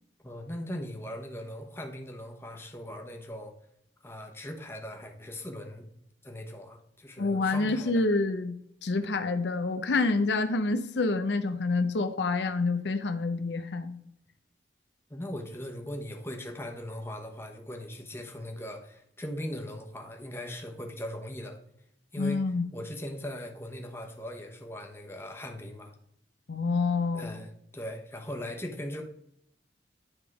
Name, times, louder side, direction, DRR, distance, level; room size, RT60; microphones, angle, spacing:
voice 1, 0.2-3.5 4.0-5.9 6.2-8.0 15.1-21.6 22.1-22.4 22.7-25.9 27.1-29.0, left 1 dB, 15° left, 2 dB, 0.9 m, -39 dB
voice 2, 7.2-8.6 8.8-13.9 22.2-22.7 26.5-27.3, left 3 dB, 75° left, 9 dB, 0.6 m, -27 dB
9.8 x 3.6 x 4.8 m, 0.73 s
head